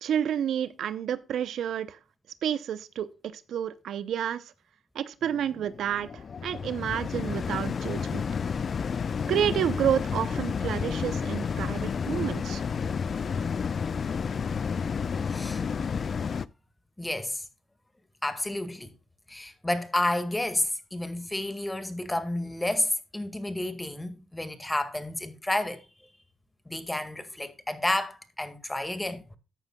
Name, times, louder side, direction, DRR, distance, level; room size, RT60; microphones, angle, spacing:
voice 1, 0.0-2.0 2.4-3.1 3.3-4.4 4.9-6.1 6.4-8.2 9.3-12.6, right 9 dB, 80° right, 0.7 m, -29 dB
sound 1, 5.2-16.5, left 6 dB, 55° left, 0.4 m, -31 dB
voice 2, 15.3-15.6 17.0-17.4 18.2-18.9 19.3-25.8 26.7-29.4, left 1 dB, 15° left, 1.9 m, -30 dB
13.5 x 9.1 x 2.3 m
supercardioid pair, 60°, 0 cm